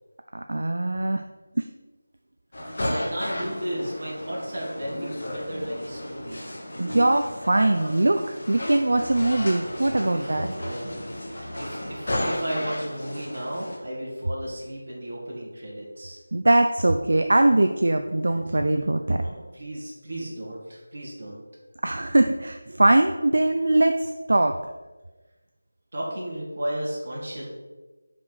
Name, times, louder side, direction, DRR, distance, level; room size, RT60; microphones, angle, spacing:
voice 1, 0.3-1.2 1.6-1.7 6.8-10.5 16.3-19.2 21.8-24.6, right 2 dB, 60° right, 6 dB, 0.4 m, -21 dB
sound 1, 2.5-13.8, left 1 dB, 45° left, 1.5 m, -33 dB
voice 2, 2.9-6.5 10.1-16.2 19.1-21.4 25.9-27.4, right 1 dB, 40° right, -5 dB, 2.5 m, -34 dB
5.1 x 5.0 x 6.4 m, 1.2 s
figure-of-eight pair, 180°, 0 cm